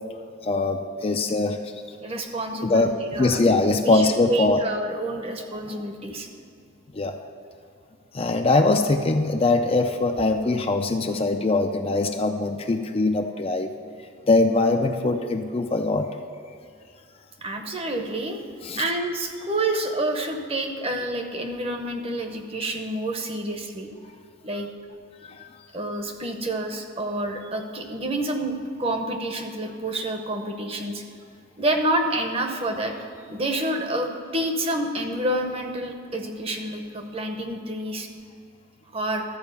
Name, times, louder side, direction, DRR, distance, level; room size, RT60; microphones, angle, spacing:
voice 1, 0.4-1.6 2.6-2.9 3.2-4.6 6.9-7.1 8.1-13.7 14.3-16.1 18.6-18.8 25.2-25.5, left 2 dB, 30° left, 5 dB, 0.4 m, -22 dB
voice 2, 2.0-3.4 3.8-6.3 17.4-18.4 18.8-23.9 24.4-24.7 25.7-31.0 31.6-38.1 38.9-39.2, right 1 dB, 30° right, 5 dB, 0.8 m, -28 dB
13.0 x 4.8 x 6.9 m, 2.4 s
head